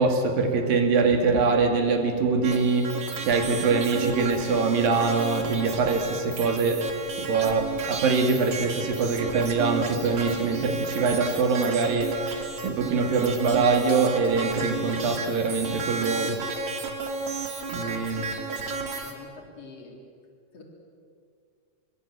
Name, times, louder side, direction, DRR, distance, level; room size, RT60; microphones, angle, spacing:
voice 1, 0.0-6.9 7.2-16.4 17.7-18.3, right 4 dB, 80° right, 4.0 m, -24 dB
sound 1, 2.4-19.2, right 4 dB, 45° right, 3.2 m, -33 dB
voice 2, 17.7-18.0 18.5-18.7 19.0-20.0 20.5-20.6, left 3 dB, 45° left, 4.8 m, -46 dB
26.5 x 23.5 x 8.1 m
omnidirectional pair, 4.0 m